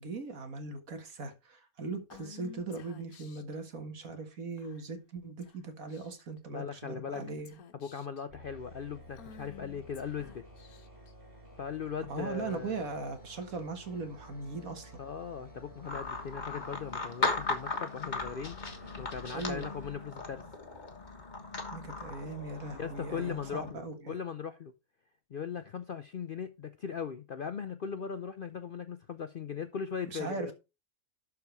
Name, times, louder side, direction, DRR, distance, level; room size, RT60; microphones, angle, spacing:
voice 1, 0.0-7.6 12.1-15.0 19.3-19.7 21.7-24.2 30.1-30.5, right 3 dB, 70° right, 2.0 m, -39 dB
Female speech woman speaking / Whispering, 2.1-3.6 4.6-5.0 5.4-5.6 5.9-6.4 7.1-8.2 9.1-11.1, left 7 dB, 80° left, 1.4 m, -52 dB
voice 2, 6.5-7.2 7.7-10.4 11.6-12.8 15.0-20.4 22.7-24.7 25.3-30.5, left 7 dB, 55° left, 0.6 m, -39 dB
sound 1, 8.3-19.9, equal, 20° right, 5.6 m, -52 dB
sound 2, 15.8-23.7, left 3 dB, 30° left, 1.6 m, -37 dB
12.0 x 4.8 x 4.6 m
omnidirectional pair, 1.5 m